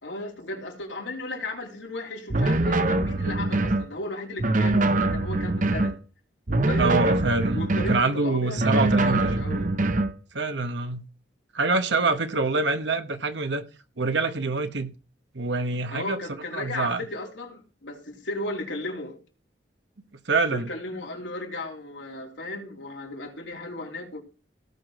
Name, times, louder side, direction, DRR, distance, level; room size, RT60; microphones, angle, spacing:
voice 1, 0.0-5.9 6.6-6.9 7.5-9.7 12.0-12.2 15.9-19.2 20.5-24.2, left 2 dB, 85° left, 3.9 m, -35 dB
sound 1, 2.3-3.9 4.4-6.0 6.5-8.1 8.6-10.1, right 2 dB, 45° right, 0.9 m, -23 dB
voice 2, 6.8-7.6 7.9-9.5 10.3-11.1 11.5-13.6 14.0-14.9 15.3-16.2 16.5-17.0 20.2-20.7, right 3 dB, 75° right, 1.2 m, -25 dB
17.5 x 6.0 x 4.7 m
head